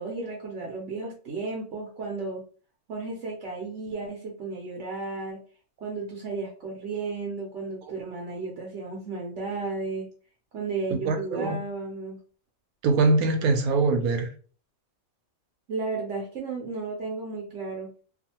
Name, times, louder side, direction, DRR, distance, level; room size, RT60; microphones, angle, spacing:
voice 1, 0.0-2.4 2.9-5.4 5.8-10.1 10.5-12.2 15.7-17.9, right 3 dB, 65° right, 0.9 m, -33 dB
voice 2, 10.9-11.6 12.8-14.3, right 3 dB, 90° right, 1.1 m, -23 dB
2.5 x 2.4 x 2.8 m
omnidirectional pair, 1.5 m